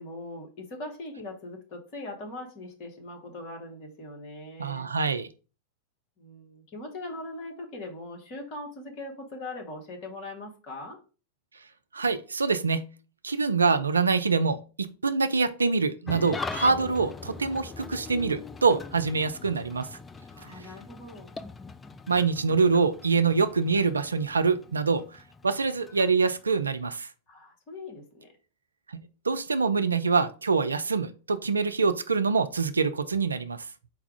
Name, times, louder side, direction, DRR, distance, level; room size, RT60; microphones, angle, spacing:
voice 1, 0.0-4.9 6.2-11.0 20.3-21.3 27.3-28.3, left 2 dB, 40° left, 2 dB, 1.3 m, -41 dB
voice 2, 4.6-5.3 11.9-12.8 13.2-19.9 22.1-27.1 28.9-33.7, right 4 dB, 75° right, 11 dB, 0.3 m, -25 dB
Engine starting / Idling, 16.1-26.7, left 4 dB, 15° left, 0.3 m, -41 dB
4.4 x 2.4 x 4.7 m, 0.35 s
figure-of-eight pair, 90°, 0 cm